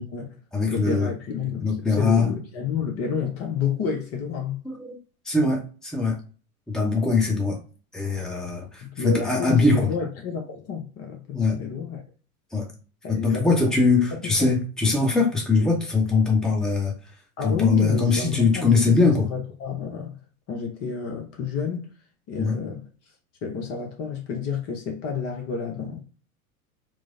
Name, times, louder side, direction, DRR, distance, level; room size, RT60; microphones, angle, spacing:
voice 1, 0.0-0.4 0.7-4.6 8.8-12.0 13.0-13.6 14.1-14.6 17.4-20.1 20.5-21.9 22.3-22.9 23.4-26.0, left 6 dB, 35° left, 0.7 m, -30 dB
voice 2, 0.5-1.1 1.6-2.3 4.6-5.0 5.3-6.2 6.7-7.6 7.9-9.9 11.3-11.6 12.5-12.7 13.1-16.9 17.4-19.3 22.4-22.6, left 3 dB, ahead, 0.8 m, -22 dB
4.6 x 2.0 x 2.5 m
figure-of-eight pair, 90°, 45 cm